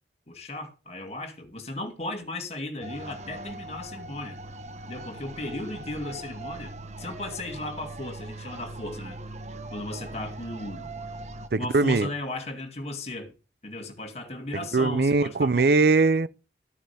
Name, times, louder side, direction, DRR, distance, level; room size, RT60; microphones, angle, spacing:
voice 1, 0.3-4.4 4.9-9.2 9.7-10.9 11.6-13.3 13.6-15.7, left 1 dB, 35° left, 2.4 m, -36 dB
sound 1, 2.8-11.5, right 2 dB, 40° right, 1.3 m, -40 dB
voice 2, 11.5-12.1 14.7-16.3, right 3 dB, 60° right, 0.5 m, -21 dB
14.0 x 9.1 x 3.5 m
head